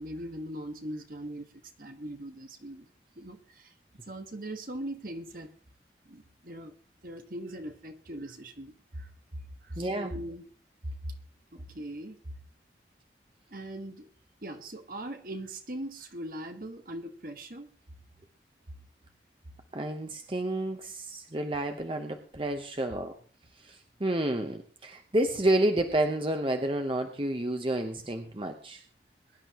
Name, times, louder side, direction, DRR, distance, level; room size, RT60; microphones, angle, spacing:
voice 1, 0.0-1.5 1.8-2.9 3.2-3.7 4.0-5.5 6.0-6.7 7.0-9.1 9.6-10.4 10.8-11.2 11.5-12.2 13.5-14.1 14.4-17.7, right 1 dB, 50° right, 6 dB, 1.5 m, -40 dB
voice 2, 9.8-10.1 19.7-23.2 23.6-28.8, right 1 dB, 30° right, 5 dB, 1.0 m, -30 dB
22.0 x 11.0 x 3.0 m, 0.40 s
head